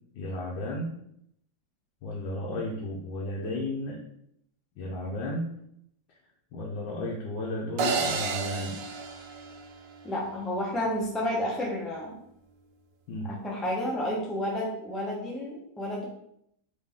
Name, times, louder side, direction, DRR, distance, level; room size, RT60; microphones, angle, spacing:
voice 1, 0.1-0.9 2.0-4.0 4.8-5.5 6.5-8.8 13.1-13.3, left 1 dB, 90° left, -3 dB, 1.5 m, -33 dB
sound 1, 7.8-10.1, right 5 dB, 80° right, 1.3 m, -31 dB
voice 2, 10.0-12.2 13.3-16.1, left 1 dB, ahead, -4 dB, 0.4 m, -31 dB
4.0 x 3.1 x 3.5 m, 0.74 s
omnidirectional pair, 1.9 m